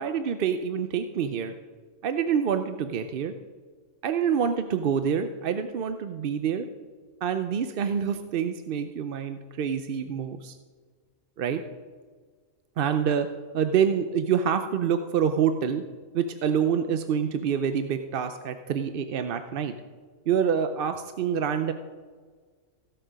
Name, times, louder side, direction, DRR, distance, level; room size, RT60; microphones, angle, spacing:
voice 1, 0.0-1.5 2.0-3.3 4.0-6.7 7.2-10.6 11.4-11.6 12.8-13.3 13.5-15.8 16.1-19.7 20.3-21.7, right 7 dB, 55° right, 8 dB, 0.7 m, -26 dB
16.5 x 6.8 x 5.1 m, 1.5 s
omnidirectional pair, 1.3 m